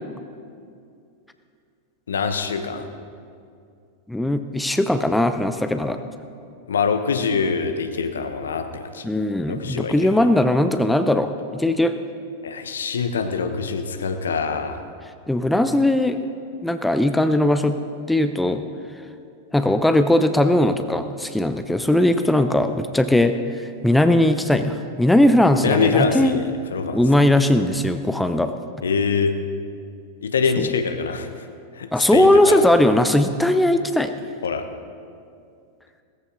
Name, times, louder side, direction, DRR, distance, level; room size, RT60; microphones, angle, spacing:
voice 1, 2.1-2.9 6.7-9.1 9.5-10.2 12.4-14.8 25.6-27.3 28.8-29.4 30.2-31.4 31.7-32.6 34.4-34.7, left 5 dB, 65° left, 8 dB, 0.9 m, -24 dB
voice 2, 4.1-6.0 9.0-12.0 15.3-16.2 16.6-17.8 18.1-18.6 19.5-26.4 26.9-28.5 30.6-30.7 31.9-34.1, left 1 dB, 5° left, 9 dB, 0.6 m, -19 dB
17.0 x 14.5 x 4.0 m, 2.4 s
figure-of-eight pair, 90°, 0 cm